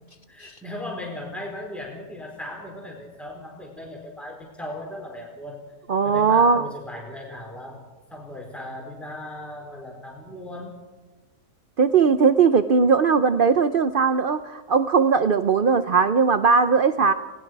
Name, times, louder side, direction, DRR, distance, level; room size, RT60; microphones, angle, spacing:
voice 1, 0.3-5.6 6.0-7.8 8.1-10.8, left 1 dB, ahead, -1 dB, 4.3 m, -37 dB
voice 2, 5.9-6.6 11.8-17.1, right 5 dB, 50° right, 11 dB, 0.7 m, -19 dB
30.0 x 20.0 x 4.7 m, 1.3 s
omnidirectional pair, 1.7 m